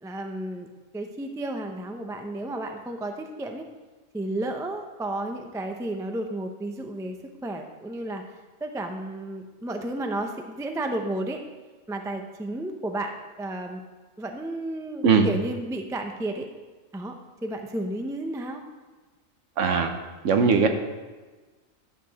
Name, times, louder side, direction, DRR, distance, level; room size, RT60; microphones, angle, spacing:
voice 1, 0.0-0.7 0.9-3.6 4.1-11.4 11.9-13.8 14.2-16.5 16.9-17.1 17.4-18.6, right 1 dB, 5° right, 4 dB, 0.3 m, -32 dB
voice 2, 19.6-19.9 20.2-20.7, right 5 dB, 70° right, 6 dB, 1.1 m, -19 dB
11.0 x 6.7 x 4.1 m, 1.3 s
omnidirectional pair, 1.4 m